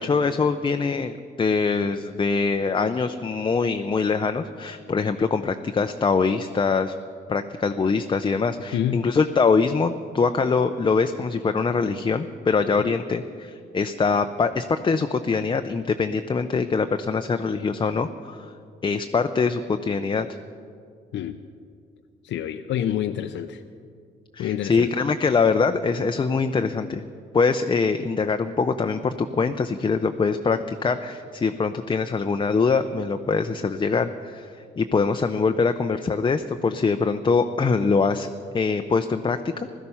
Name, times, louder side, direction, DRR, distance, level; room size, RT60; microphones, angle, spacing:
voice 1, 0.0-6.9 7.3-18.5 18.8-20.3 24.3-27.0 27.3-38.3 38.5-39.7, left 4 dB, 25° left, 7 dB, 0.5 m, -23 dB
voice 2, 8.7-9.1 12.8-13.0 21.1-21.4 22.2-23.6 24.4-24.9, left 10 dB, 70° left, 7 dB, 0.6 m, -27 dB
16.5 x 12.5 x 5.6 m, 2.4 s
cardioid pair, 90°, 20 cm